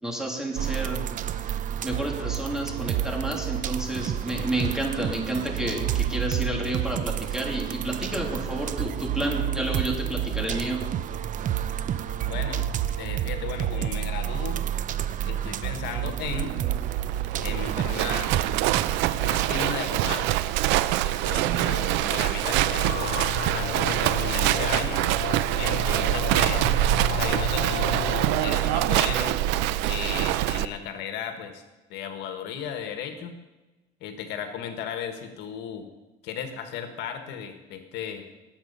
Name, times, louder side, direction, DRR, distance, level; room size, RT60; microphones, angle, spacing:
voice 1, 0.0-1.0 1.8-10.8, right 1 dB, 5° right, 0 dB, 2.8 m, -30 dB
sound 1, 0.6-19.6, right 10 dB, 50° right, 0.7 m, -30 dB
voice 2, 12.3-12.7 13.0-14.6 15.2-16.5 17.4-18.3 19.2-20.4 21.0-23.2 23.5-25.0 25.6-26.7 27.1-29.4 29.9-31.6 31.9-33.3 34.0-35.9 36.2-38.2, left 7 dB, 75° left, 7 dB, 1.5 m, -35 dB
Livestock farm animals working animals, 16.2-30.7, right 14 dB, 85° right, 0.5 m, -25 dB
sound 2, 22.4-28.6, left 10 dB, 55° left, 0.7 m, -34 dB
18.5 x 7.6 x 5.5 m, 1.1 s
cardioid pair, 120°, 17 cm